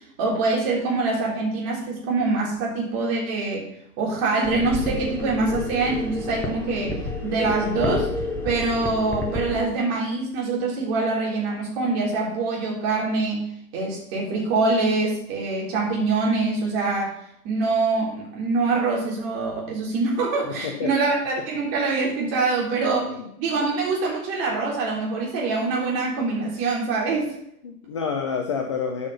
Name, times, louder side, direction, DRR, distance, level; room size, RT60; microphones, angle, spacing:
voice 1, 0.2-3.7 4.0-8.1 8.4-13.5 13.7-17.2 17.4-23.1 23.4-27.3, right 3 dB, 30° right, -3 dB, 3.7 m, -24 dB
sound 1, 4.4-9.6, left 2 dB, 5° left, 0.8 m, -30 dB
voice 2, 20.5-20.9 23.1-23.3 27.6-29.1, left 6 dB, 20° left, 4 dB, 0.4 m, -28 dB
12.5 x 5.7 x 5.5 m, 0.74 s
figure-of-eight pair, 115°, 47 cm